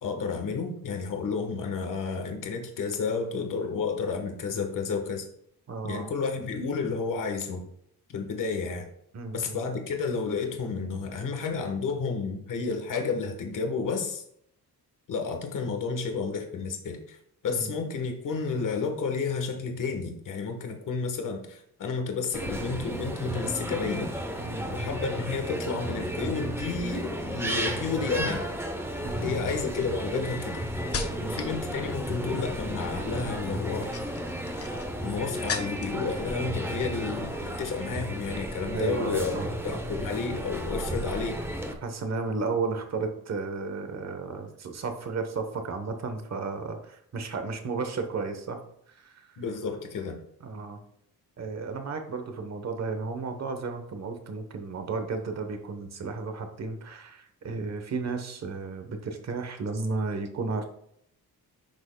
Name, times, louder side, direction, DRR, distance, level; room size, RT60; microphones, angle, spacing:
voice 1, 0.0-5.3 5.8-7.6 8.1-8.8 9.3-14.2 15.1-17.2 17.4-24.1 24.7-28.5 29.2-30.6 31.2-34.0 35.0-39.3 39.6-41.4 49.4-50.1, left 5 dB, 55° left, 4 dB, 1.3 m, -31 dB
voice 2, 5.7-6.1 9.1-9.6 17.5-17.8 24.4-24.7 29.0-29.4 31.1-31.4 38.7-39.8 41.8-48.6 48.9-49.4 50.4-50.8 51.4-60.7, right 4 dB, 45° right, 6 dB, 1.1 m, -33 dB
sound 1, 22.3-41.7, equal, 5° right, 0.8 m, -33 dB
sound 2, 28.4-28.5 29.2-31.6 31.9-32.4 33.6-36.0 36.4-37.0 37.3-37.5, left 5 dB, 40° left, 0.8 m, -38 dB
10.5 x 6.2 x 2.3 m, 0.70 s
wide cardioid pair, 160°, 37 cm